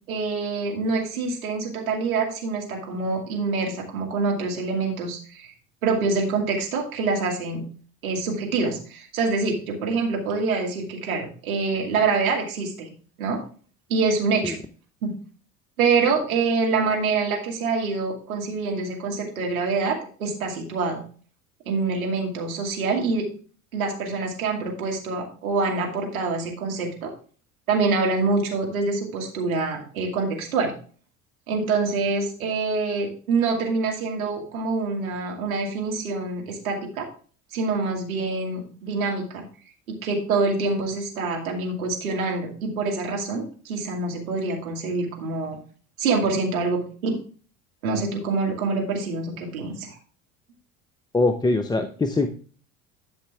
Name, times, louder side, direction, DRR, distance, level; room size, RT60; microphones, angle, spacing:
voice 1, 0.1-5.5 5.8-7.6 8.0-12.9 13.2-13.4 13.9-14.6 15.0-15.1 15.8-21.0 21.7-23.3 23.7-27.1 27.7-30.7 31.5-37.1 37.5-39.4 39.9-45.6 46.0-47.1 47.8-50.0, right 4 dB, 75° right, 1 dB, 2.5 m, -25 dB
voice 2, 51.1-52.3, left 2 dB, 10° left, 7 dB, 0.7 m, -22 dB
11.5 x 5.8 x 3.4 m, 0.40 s
figure-of-eight pair, 65°, 43 cm